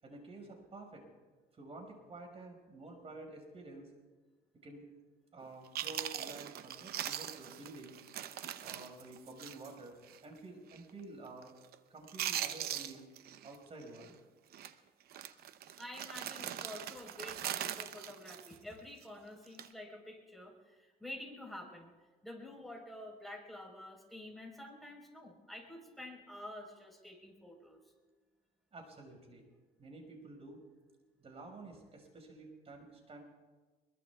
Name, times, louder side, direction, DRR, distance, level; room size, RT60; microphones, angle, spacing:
voice 1, 0.0-1.0 1.5-3.9 4.6-4.9 5.3-8.0 8.6-11.5 11.9-13.1 13.4-14.1 28.7-29.5 29.8-30.6 31.2-33.2, right 2 dB, 35° right, 2 dB, 5.6 m, -50 dB
Chewing mastication, 5.4-5.5 5.8-9.8 10.1-10.2 10.7-11.0 11.3-11.7 12.0-13.6 13.8-14.1 14.5-14.7 15.1-19.0 19.5-19.7, right 11 dB, 65° right, 0.8 m, -41 dB
voice 2, 15.8-21.9 22.2-27.8, left 1 dB, ahead, -1 dB, 4.3 m, -49 dB
23.5 x 22.5 x 2.4 m, 1.3 s
cardioid pair, 110°, 17 cm